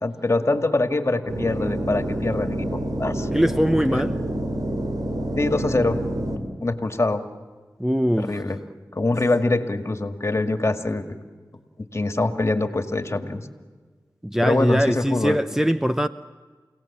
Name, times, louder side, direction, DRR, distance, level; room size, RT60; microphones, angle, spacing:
voice 1, 0.0-3.3 3.9-4.0 5.4-6.0 6.3-7.2 8.2-8.6 8.9-11.1 11.8-13.5 14.4-15.4, left 2 dB, 40° left, 2.1 m, -24 dB
sound 1, 1.3-6.4, right 1 dB, 60° right, 3.2 m, -28 dB
voice 2, 3.3-4.2 7.8-8.4 14.2-16.1, equal, 5° right, 0.7 m, -21 dB
29.5 x 18.0 x 7.3 m
cardioid pair, 45°, 7 cm